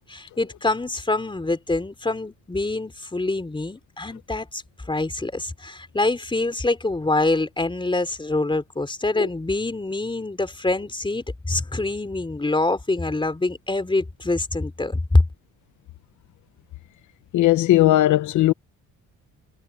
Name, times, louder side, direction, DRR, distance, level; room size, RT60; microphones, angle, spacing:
voice 1, 0.0-4.6 4.9-15.2, left 2 dB, 15° left, 4.1 m, -25 dB
voice 2, 17.3-18.5, left 15 dB, 75° left, 0.8 m, -17 dB
cardioid pair, 90°, 30 cm